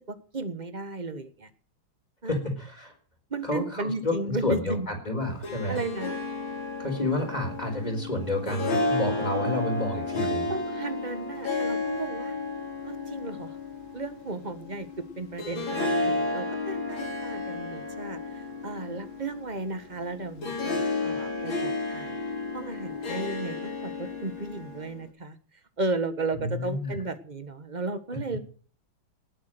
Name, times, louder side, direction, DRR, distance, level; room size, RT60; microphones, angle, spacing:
voice 1, 0.1-1.5 2.2-2.4 3.3-4.9 5.7-6.2 10.5-12.4 12.8-13.6 13.9-14.9 15.2-22.2 22.5-25.4 25.8-28.4, right 3 dB, 25° right, 11 dB, 1.3 m, -34 dB
voice 2, 2.2-2.9 3.4-5.8 6.8-10.5 26.4-27.0, left 1 dB, 20° left, 4 dB, 4.4 m, -30 dB
Harp, 5.2-25.0, left 2 dB, 80° left, 3.6 m, -32 dB
19.0 x 8.6 x 7.7 m, 0.43 s
omnidirectional pair, 2.2 m